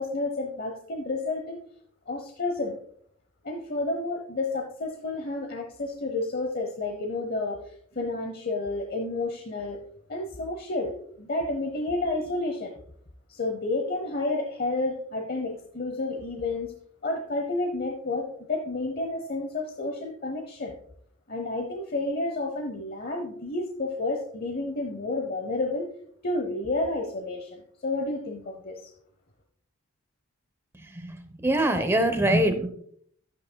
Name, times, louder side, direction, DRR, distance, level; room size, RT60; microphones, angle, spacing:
voice 1, 0.0-1.6 2.1-2.8 3.4-7.6 7.9-9.8 10.1-12.7 13.3-16.7 17.0-20.7 21.3-25.9 26.2-28.9, left 2 dB, 45° left, 3 dB, 0.9 m, -30 dB
voice 2, 30.9-32.7, right 1 dB, 10° right, 7 dB, 0.8 m, -24 dB
12.0 x 8.7 x 2.2 m, 0.63 s
head